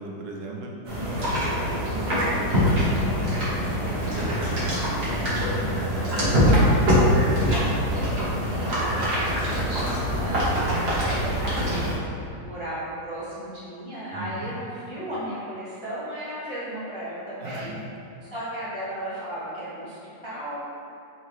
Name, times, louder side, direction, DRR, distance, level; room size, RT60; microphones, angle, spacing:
voice 1, 0.0-2.3 4.0-4.2 4.5-6.4 7.0-8.5 14.1-14.5 17.4-17.8, right 2 dB, 85° right, -1 dB, 1.3 m, -37 dB
sound 1, 0.9-11.9, equal, 40° right, 1.2 m, -23 dB
voice 2, 3.8-4.8 8.5-11.9 12.4-17.7 18.3-20.0 20.2-20.6, right 1 dB, 40° left, -11 dB, 0.4 m, -35 dB
3.8 x 3.7 x 3.1 m, 2.7 s
omnidirectional pair, 1.8 m